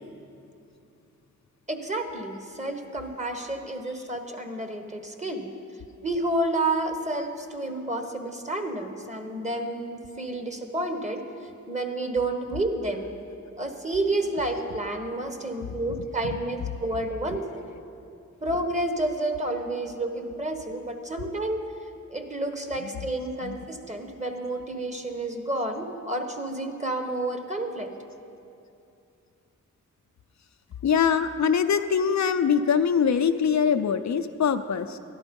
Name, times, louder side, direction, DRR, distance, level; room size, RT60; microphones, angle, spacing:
voice 1, 1.7-5.5 6.0-11.2 11.7-13.1 13.6-17.4 18.4-21.6 22.1-27.9, right 2 dB, 25° right, 5 dB, 1.3 m, -30 dB
voice 2, 15.7-16.7 17.3-17.4 22.8-23.1 23.4-23.6 30.8-35.0, left 7 dB, 65° left, 8 dB, 0.6 m, -24 dB
12.5 x 11.5 x 5.3 m, 2.7 s
cardioid pair, 70°, 30 cm